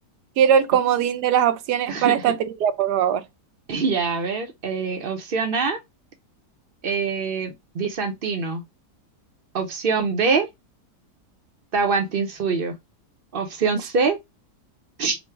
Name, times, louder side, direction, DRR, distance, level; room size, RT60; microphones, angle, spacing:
voice 1, 0.4-2.4 2.6-3.2, right 9 dB, 75° right, 1.2 m, -20 dB
voice 2, 3.7-5.8 6.8-8.6 9.5-10.5 11.7-12.8 13.3-14.2 15.0-15.2, right 5 dB, 50° right, 0.7 m, -24 dB
4.1 x 2.1 x 4.5 m
omnidirectional pair, 1.8 m